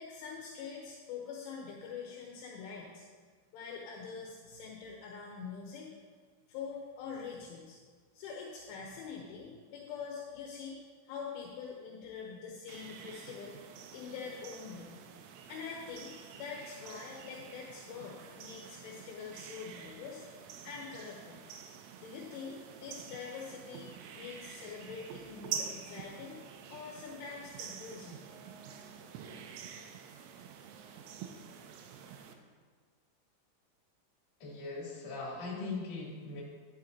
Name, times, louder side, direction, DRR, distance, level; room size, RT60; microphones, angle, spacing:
voice 1, 0.0-3.1 3.5-6.0 6.5-7.8 8.1-14.9 15.5-21.4 22.0-28.2, left 5 dB, 75° left, -2 dB, 3.3 m, -45 dB
sound 1, 12.7-32.3, right 8 dB, 85° right, 3.3 m, -47 dB
voice 2, 34.4-36.4, left 3 dB, 45° left, -5 dB, 3.7 m, -40 dB
12.5 x 11.5 x 2.8 m, 1.5 s
omnidirectional pair, 6.0 m